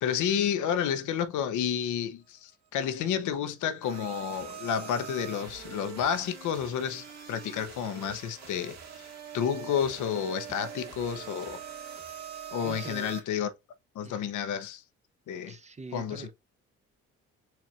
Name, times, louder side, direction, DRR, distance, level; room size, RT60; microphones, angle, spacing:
voice 1, 0.0-9.1 9.3-11.6 12.5-13.5 13.9-14.8 15.3-15.6 15.9-16.3, left 8 dB, 80° left, 0.8 m, -30 dB
sound 1, 3.8-13.2, right 8 dB, 60° right, 1.8 m, -43 dB
voice 2, 12.6-13.2 14.0-14.3 15.5-16.3, right 3 dB, 25° right, 0.7 m, -44 dB
4.5 x 2.5 x 4.3 m
cardioid pair, 90°, 30 cm